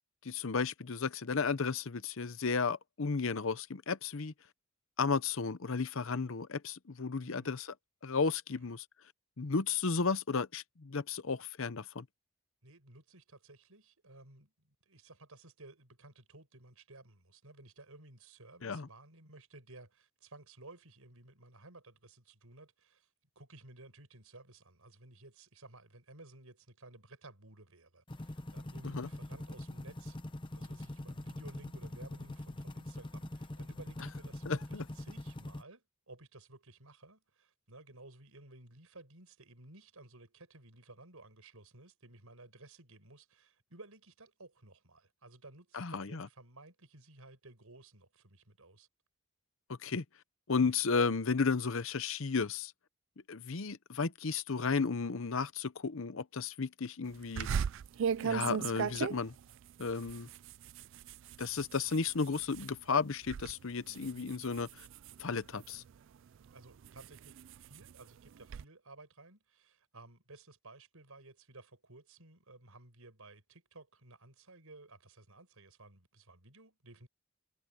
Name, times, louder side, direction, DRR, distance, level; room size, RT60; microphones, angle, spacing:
voice 1, 0.2-4.3 5.0-7.7 8.0-8.8 9.4-12.0 18.6-18.9 28.8-29.1 34.5-34.8 45.7-46.3 49.7-50.0 50.5-52.7 53.3-57.5 58.2-59.3 59.8-60.3 61.4-64.9 65.2-65.8, left 4 dB, 60° left, 0.7 m, -33 dB
voice 2, 7.2-7.6 8.5-8.7 12.6-23.1 23.4-48.9 64.1-64.5 66.5-77.1, right 2 dB, 75° right, 5.2 m, -56 dB
sound 1, 28.1-35.6, left 1 dB, 20° left, 0.7 m, -43 dB
sound 2, 57.4-62.7 63.1-63.5 63.9-65.9 66.5-68.6, right 7 dB, 55° right, 0.3 m, -37 dB
head